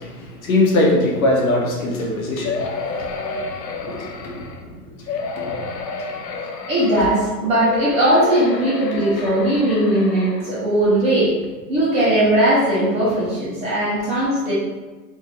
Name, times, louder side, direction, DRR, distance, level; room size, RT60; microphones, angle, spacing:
voice 1, 0.0-4.4 5.4-5.6, left 2 dB, 55° left, -2 dB, 1.3 m, -22 dB
sound 1, 2.4-4.6 5.1-7.2 7.6-10.5 11.1-11.2 11.4-11.5, left 4 dB, 85° left, 0.8 m, -30 dB
voice 2, 6.7-11.3 11.7-14.5, right 1 dB, 15° right, -10 dB, 0.7 m, -18 dB
4.7 x 2.6 x 3.2 m, 1.3 s
hypercardioid pair, 145°, 49 cm